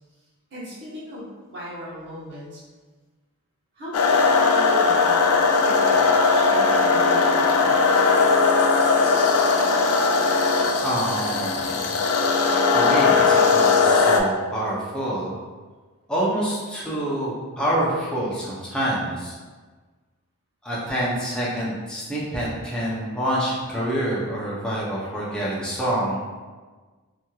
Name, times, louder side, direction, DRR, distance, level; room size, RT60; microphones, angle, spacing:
voice 1, 0.5-2.6 3.7-8.1, equal, 55° right, -9 dB, 1.0 m, -37 dB
sound 1, 3.9-14.2, left 4 dB, 90° left, 0.3 m, -19 dB
voice 2, 10.8-12.0 12.7-15.4 16.1-19.3 20.6-26.2, right 1 dB, 5° left, -8 dB, 0.6 m, -27 dB
3.1 x 2.8 x 2.3 m, 1.4 s
head